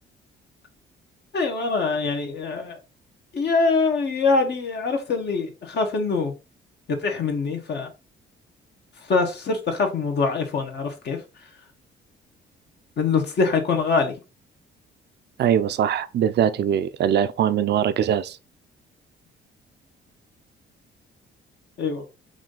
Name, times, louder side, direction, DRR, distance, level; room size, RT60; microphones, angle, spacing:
voice 1, 1.3-2.8 3.3-6.3 6.9-7.9 9.0-11.5 13.0-14.1 21.8-22.0, left 4 dB, 60° left, 1.3 m, -24 dB
voice 2, 15.4-18.4, right 9 dB, 60° right, 0.5 m, -22 dB
4.9 x 2.7 x 3.8 m
cardioid pair, 90°, 20 cm